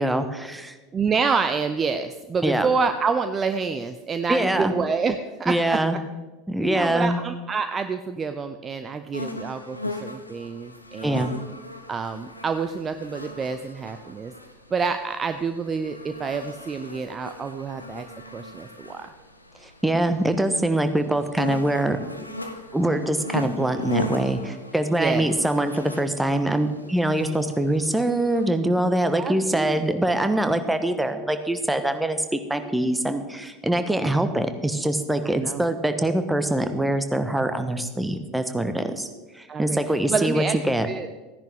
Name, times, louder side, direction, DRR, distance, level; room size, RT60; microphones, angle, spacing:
voice 1, 0.0-0.8 2.4-2.7 4.3-4.7 5.5-6.0 6.5-7.2 11.0-11.4 19.6-22.0 22.7-39.1 39.3-40.9, right 1 dB, 5° right, 9 dB, 1.1 m, -24 dB
voice 2, 0.9-6.0 6.6-11.3 11.9-14.3 14.7-18.1 18.3-19.1 25.0-25.3 29.2-30.0 35.2-35.6 39.5-39.8 40.1-40.6 40.9-41.1, right 5 dB, 25° right, 9 dB, 0.6 m, -27 dB
sound 1, 9.1-28.5, left 1 dB, 90° left, 0.7 m, -38 dB
15.0 x 10.5 x 3.5 m, 1.2 s
figure-of-eight pair, 80°, 0 cm